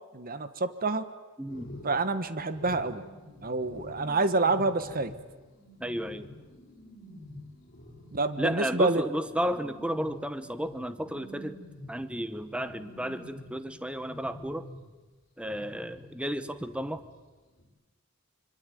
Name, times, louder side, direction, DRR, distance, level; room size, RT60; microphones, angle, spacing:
voice 1, 0.1-1.1 1.8-3.0 3.4-5.1 8.1-9.0, right 3 dB, 45° right, 11 dB, 1.3 m, -27 dB
voice 2, 1.4-1.8 5.8-6.3 8.4-11.6 11.9-14.7 15.4-17.0, equal, 5° right, 11 dB, 1.0 m, -33 dB
sound 1, 1.5-15.1 15.4-17.3 17.6-17.7, left 1 dB, 45° left, 7.4 m, -48 dB
25.5 x 24.5 x 9.2 m, 1.3 s
head